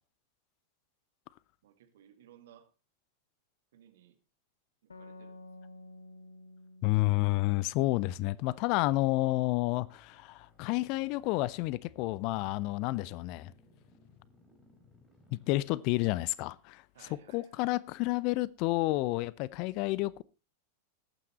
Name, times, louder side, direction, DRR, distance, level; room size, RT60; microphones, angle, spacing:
voice 1, 1.6-2.7 3.7-4.2 4.8-5.4 16.9-17.8, right 10 dB, 60° right, 2.3 m, -59 dB
sound 1, 4.9-8.4, left 2 dB, 70° left, 1.0 m, -52 dB
voice 2, 6.8-13.5 15.3-16.8 17.3-20.2, left 19 dB, 45° left, 0.6 m, -30 dB
sound 2, 9.7-16.6, left 3 dB, 15° left, 4.4 m, -63 dB
21.0 x 9.3 x 3.0 m
figure-of-eight pair, 90°, 0 cm